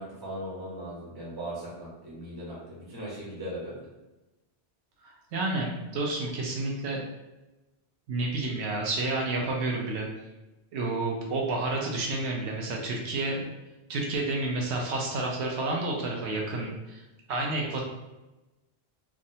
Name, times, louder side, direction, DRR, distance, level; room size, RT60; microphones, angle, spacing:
voice 1, 0.0-3.8, right 1 dB, 20° right, -6 dB, 0.9 m, -38 dB
voice 2, 5.0-7.0 8.1-10.1 10.7-13.5 13.9-17.0 17.3-17.9, right 2 dB, 80° right, 0 dB, 0.9 m, -30 dB
3.4 x 2.1 x 2.7 m, 1.0 s
omnidirectional pair, 1.1 m